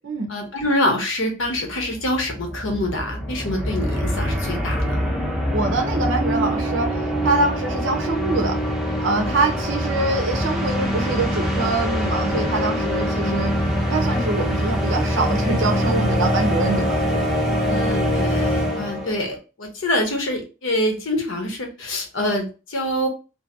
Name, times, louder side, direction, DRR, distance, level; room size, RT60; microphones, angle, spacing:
voice 1, 0.3-5.1 17.6-23.1, left 1 dB, 80° left, 3 dB, 0.8 m, -25 dB
sound 1, 1.5-1.6 1.8-19.3, equal, ahead, 0.5 m, -23 dB
voice 2, 5.5-8.6 9.0-13.5 13.8-17.6, right 3 dB, 75° right, 4 dB, 0.6 m, -24 dB
2.7 x 2.5 x 2.6 m, 0.32 s
head